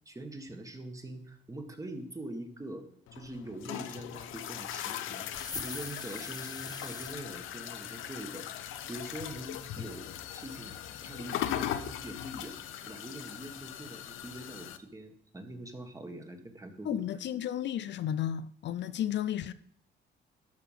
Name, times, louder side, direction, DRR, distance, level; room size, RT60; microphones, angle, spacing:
voice 1, 0.1-8.5 8.9-10.8 11.0-12.6 12.9-17.0, right 1 dB, 15° right, 1.8 m, -43 dB
sound 1, 3.1-14.8, left 10 dB, 90° left, 0.8 m, -39 dB
sound 2, 5.3-7.2, left 4 dB, 20° left, 0.7 m, -42 dB
voice 2, 16.8-19.5, left 10 dB, 65° left, 0.5 m, -33 dB
12.5 x 5.9 x 5.8 m
cardioid pair, 90°, 20 cm